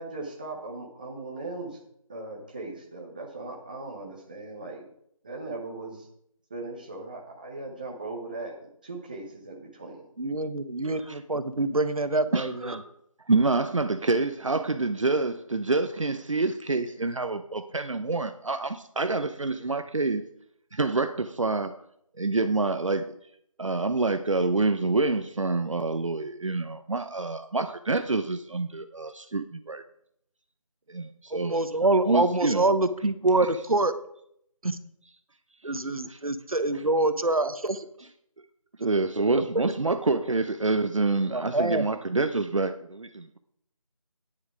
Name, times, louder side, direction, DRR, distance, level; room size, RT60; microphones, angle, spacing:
voice 1, 0.0-1.8 2.1-4.8 5.2-6.1 6.5-8.5 8.8-10.0, right 2 dB, 15° right, 0 dB, 1.0 m, -38 dB
voice 2, 10.2-12.8 31.3-33.9 34.6-34.8 35.6-37.8 39.4-39.5 41.3-41.9, right 2 dB, 80° right, 11 dB, 1.1 m, -25 dB
voice 3, 12.3-12.8 13.3-20.2 20.7-21.7 22.2-23.1 23.6-29.8 30.9-31.6 32.1-32.6 36.0-36.2 38.8-43.4, right 3 dB, 60° right, 9 dB, 0.8 m, -27 dB
9.8 x 9.7 x 4.9 m, 0.71 s
figure-of-eight pair, 170°, 18 cm